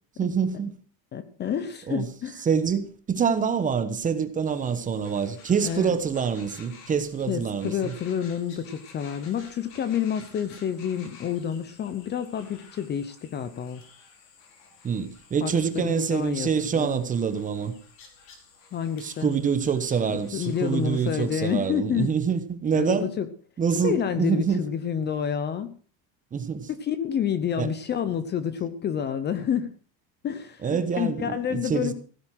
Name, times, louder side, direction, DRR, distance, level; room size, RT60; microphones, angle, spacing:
voice 1, 0.2-0.7 1.9-2.1 2.4-7.9 14.8-17.7 19.0-23.1 23.6-24.6 26.3-26.7 27.6-27.7 30.6-31.9, right 6 dB, 20° right, 1.1 m, -26 dB
voice 2, 1.1-2.4 5.6-5.9 7.3-13.8 15.4-17.0 18.7-19.3 20.1-22.1 22.7-23.3 23.8-25.7 26.8-29.7 30.2-31.9, left 8 dB, 25° left, 0.8 m, -29 dB
sound 1, 4.5-21.3, left 5 dB, 55° left, 4.9 m, -52 dB
16.0 x 9.5 x 6.2 m
cardioid pair, 175°, 41 cm